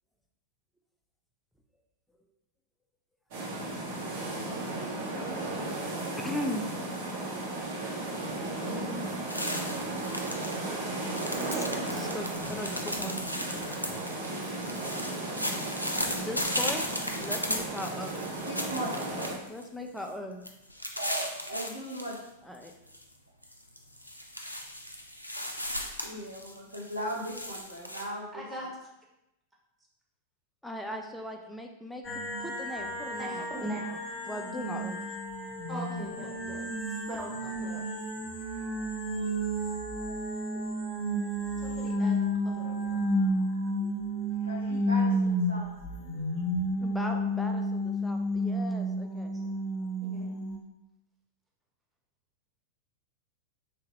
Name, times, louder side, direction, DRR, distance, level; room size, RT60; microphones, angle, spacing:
sound 1, 3.3-19.4, right 2 dB, 50° right, 0.9 m, -35 dB
voice 1, 6.2-6.7 11.5-13.3 13.7-14.0 16.2-16.8 17.1-18.2 19.5-20.4 22.5-22.7 26.1-26.2 30.6-33.7 34.3-35.0 46.8-49.3, left 1 dB, 5° left, 3 dB, 0.4 m, -38 dB
sound 2, 9.3-10.6 10.9-19.6 20.0-20.1 20.4-22.2 22.5-23.0 23.4-28.0, equal, 90° left, 0.4 m, -36 dB
voice 2, 18.4-19.3 21.0-22.2 26.0-28.4 44.4-45.7, equal, 80° right, -6 dB, 0.7 m, -38 dB
voice 3, 28.3-28.7 33.2-34.0 35.7-36.7 37.1-37.8 38.4-38.6 41.6-42.2 42.4-43.1 49.3-49.5 50.0-50.3, right 1 dB, 10° right, -3 dB, 0.9 m, -40 dB
sound 3, 32.0-50.6, equal, 30° left, 0.9 m, -31 dB
3.4 x 2.8 x 2.9 m, 0.88 s
figure-of-eight pair, 90°, 0 cm